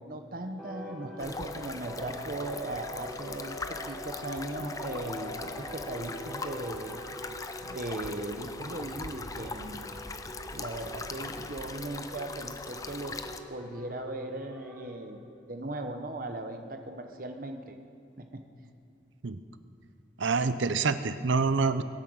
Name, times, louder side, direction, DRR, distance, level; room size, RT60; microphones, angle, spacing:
voice 1, 0.0-7.0 7.6-10.1 10.5-13.2 13.5-15.2 15.5-17.8 18.2-18.4, right 1 dB, 45° right, 5 dB, 0.9 m, -38 dB
sound 1, 0.6-15.0, equal, 5° left, 2.1 m, -44 dB
sound 2, 1.2-13.4, left 3 dB, 20° left, 0.5 m, -41 dB
voice 2, 20.2-21.8, right 4 dB, 85° right, 12 dB, 0.6 m, -26 dB
22.0 x 9.1 x 6.3 m, 2.3 s
head